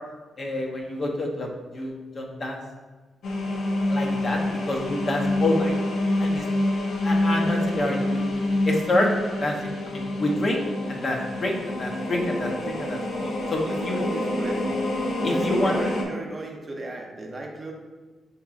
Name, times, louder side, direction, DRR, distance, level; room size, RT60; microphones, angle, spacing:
voice 1, 0.4-2.6 3.9-5.8 6.2-6.5 7.0-8.3 8.6-9.1 9.4-9.6 9.9-10.6 10.9-13.0 13.5-14.1 15.2-15.8, left 1 dB, 45° left, 0 dB, 0.7 m, -27 dB
sound 1, 3.2-16.0, left 1 dB, 85° left, 0.7 m, -27 dB
voice 2, 13.2-14.7 15.2-17.7, right 2 dB, 30° right, 0 dB, 0.6 m, -36 dB
5.7 x 2.9 x 2.4 m, 1.3 s
cardioid pair, 115°, 0 cm